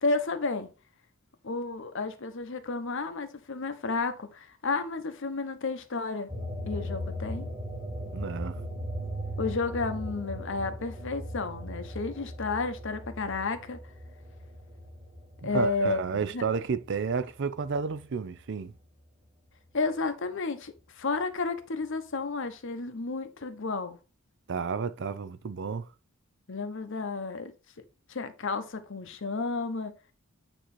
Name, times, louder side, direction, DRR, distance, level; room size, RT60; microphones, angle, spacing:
voice 1, 0.0-0.7 1.4-6.3 6.7-7.5 9.4-13.8 15.4-16.5 19.7-24.0 26.5-27.5 28.1-29.9, left 3 dB, 60° left, 0.9 m, -32 dB
sound 1, 6.3-17.2 17.6-19.0, equal, 25° right, 1.9 m, -38 dB
voice 2, 8.1-8.6 15.4-18.7 24.5-25.9, right 5 dB, 55° right, 0.5 m, -31 dB
8.9 x 3.1 x 4.2 m
head